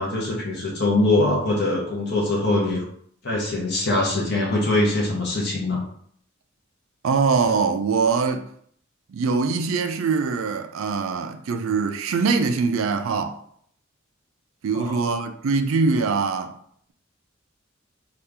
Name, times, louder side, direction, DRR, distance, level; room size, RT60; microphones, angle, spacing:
voice 1, 0.0-2.9 3.2-5.8 14.7-15.0, left 2 dB, 55° left, 0.8 m, -23 dB
voice 2, 7.0-8.4 9.1-13.4 14.6-16.5, right 4 dB, 80° right, 0.4 m, -23 dB
2.8 x 2.4 x 3.4 m
head